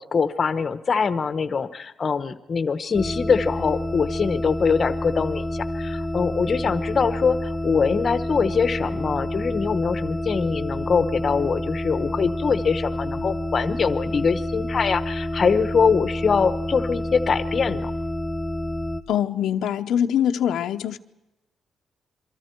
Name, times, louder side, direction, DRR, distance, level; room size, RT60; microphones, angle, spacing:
voice 1, 0.0-17.9, left 5 dB, 30° left, 0.9 m, -23 dB
sound 1, 2.9-19.0, left 1 dB, ahead, 1.0 m, -29 dB
voice 2, 19.1-21.0, left 9 dB, 85° left, 0.9 m, -23 dB
27.5 x 24.0 x 4.6 m
wide cardioid pair, 175°, 0 cm